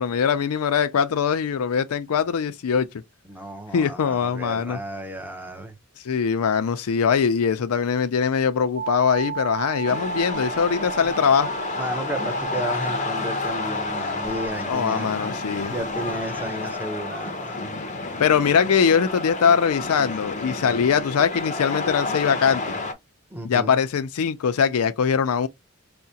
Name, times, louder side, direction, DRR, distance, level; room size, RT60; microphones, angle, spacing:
voice 1, 0.0-2.9 3.7-4.8 6.0-11.5 14.7-15.7 18.2-22.6 23.4-25.5, left 6 dB, 85° left, 0.4 m, -22 dB
voice 2, 3.3-5.8 11.7-15.3 15.7-17.8 23.3-23.8, right 1 dB, 10° right, 0.7 m, -33 dB
sound 1, 8.8-18.5, right 7 dB, 60° right, 0.3 m, -37 dB
sound 2, 9.8-22.9, left 3 dB, 35° left, 0.5 m, -30 dB
sound 3, 11.0-16.7, equal, 30° right, 1.3 m, -43 dB
4.7 x 2.1 x 2.7 m
head